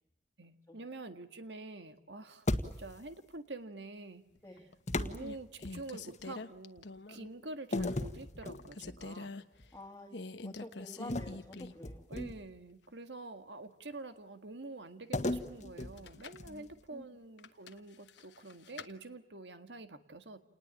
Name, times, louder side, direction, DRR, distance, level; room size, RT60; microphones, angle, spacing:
voice 1, 0.4-2.5 2.8-4.3 5.0-9.3 12.1-20.4, right 2 dB, 90° right, 8 dB, 1.8 m, -47 dB
sound 1, 2.5-3.1 4.9-6.2 7.7-9.1 9.5-9.8 11.1-12.6 15.1-16.8, left 1 dB, 45° left, 1.6 m, -37 dB
sound 2, 4.4-4.7 5.1-7.3 7.7-8.0 8.4-9.4 10.1-11.9 12.2-12.3 15.8-16.5 17.4-18.9, left 3 dB, 80° left, 1.2 m, -43 dB
voice 2, 9.7-10.1 10.4-12.1 16.4-17.0, left 1 dB, 15° left, -1 dB, 2.0 m, -49 dB
29.0 x 20.0 x 8.9 m, 0.85 s
head